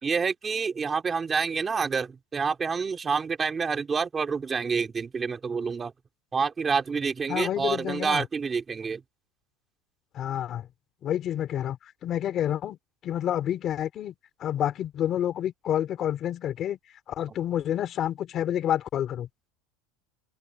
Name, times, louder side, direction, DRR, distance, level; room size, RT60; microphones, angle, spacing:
voice 1, 0.0-5.9 6.3-9.0, right 5 dB, 15° right, 3.0 m, -28 dB
voice 2, 7.3-8.3 10.1-10.7 11.0-11.8 12.0-12.8 13.0-14.1 14.4-16.8 17.1-19.3, left 11 dB, 30° left, 3.6 m, -28 dB
supercardioid pair, 175°, 0 cm